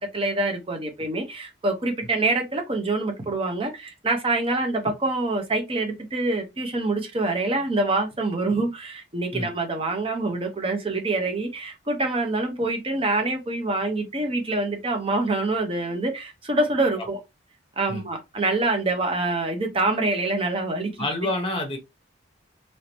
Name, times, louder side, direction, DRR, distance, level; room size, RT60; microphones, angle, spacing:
voice 1, 0.1-17.2 17.8-20.9, right 2 dB, 25° right, 0.7 m, -25 dB
voice 2, 21.0-21.8, left 2 dB, 25° left, 0.8 m, -28 dB
3.1 x 2.8 x 2.9 m
head